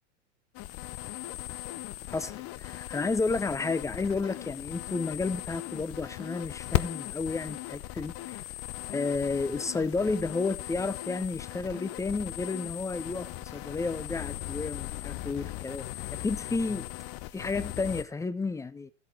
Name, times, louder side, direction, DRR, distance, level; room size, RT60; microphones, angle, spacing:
sound 1, 0.5-18.0, left 16 dB, 40° left, 0.8 m, -38 dB
voice 1, 2.1-8.4 8.9-15.8 16.2-16.8 17.3-18.9, left 3 dB, 10° left, 0.8 m, -32 dB
13.5 x 8.1 x 4.4 m
hypercardioid pair, 100°, 37 cm